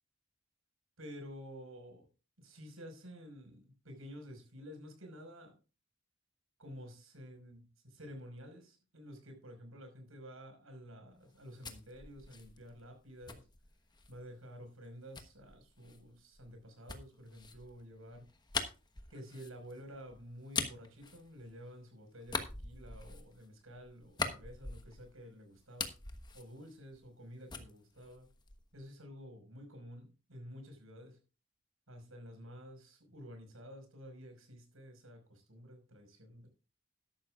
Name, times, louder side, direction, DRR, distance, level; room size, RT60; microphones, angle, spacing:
voice 1, 1.0-2.1 2.4-5.5 6.6-13.5 14.1-18.2 19.1-25.9 26.3-28.3 28.7-31.2 31.9-36.5, equal, 80° right, 5 dB, 5.3 m, -51 dB
sound 1, 11.2-14.3 15.1-21.8 22.2-25.2 25.5-27.2 27.5-28.8, left 4 dB, 20° left, 1.1 m, -43 dB
12.5 x 12.0 x 2.4 m, 0.33 s
head